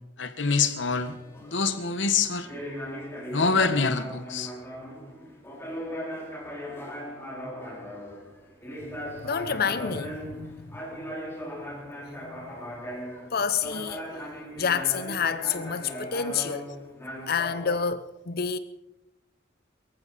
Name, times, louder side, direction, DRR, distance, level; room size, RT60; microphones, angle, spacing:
voice 1, 0.2-1.1 1.4-2.5 3.3-4.5, left 4 dB, 75° left, 1.3 m, -25 dB
sound 1, 0.6-17.8, equal, 15° left, 3.7 m, -38 dB
voice 2, 9.2-10.7 12.2-12.5 13.3-14.3 14.6-16.7 17.3-18.6, left 6 dB, 55° left, 0.7 m, -29 dB
23.5 x 14.5 x 4.2 m
head